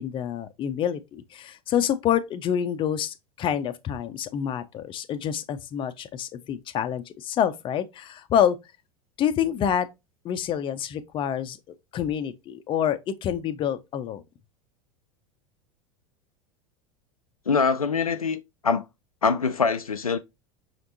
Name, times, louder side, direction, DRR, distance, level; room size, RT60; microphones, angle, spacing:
voice 1, 0.0-8.6 9.2-9.9 10.2-14.2, left 9 dB, 30° left, 0.6 m, -27 dB
voice 2, 17.5-18.8 19.2-20.2, left 5 dB, 85° left, 0.4 m, -24 dB
5.7 x 3.4 x 2.6 m
figure-of-eight pair, 80°, 18 cm